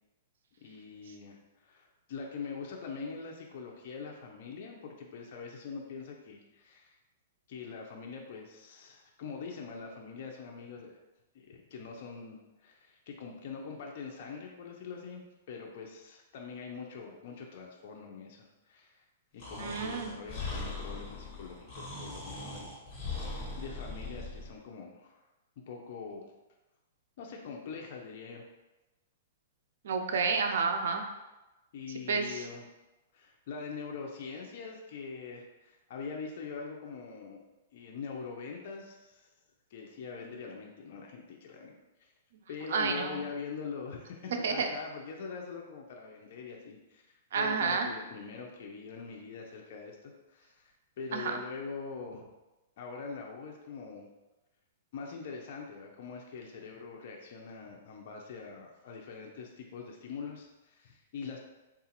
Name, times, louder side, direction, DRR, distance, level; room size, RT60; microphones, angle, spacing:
voice 1, 0.6-7.0 7.5-10.9 11.5-19.0 19.3-22.7 23.0-25.2 25.7-26.3 27.2-28.4 31.7-32.6 33.1-37.4 37.7-39.3 39.7-41.7 42.5-47.1 47.4-52.3 52.8-54.1 54.9-61.4, left 5 dB, 55° left, 0 dB, 0.5 m, -43 dB
Breathing, 19.4-24.5, left 3 dB, 25° left, 1.4 m, -40 dB
voice 2, 19.6-20.1 29.8-31.0 32.1-32.4 42.7-43.2 44.4-44.7 47.3-47.9 51.1-51.4, right 5 dB, 70° right, 4 dB, 0.4 m, -30 dB
3.8 x 2.4 x 2.9 m, 1.0 s
hypercardioid pair, 150°, 0 cm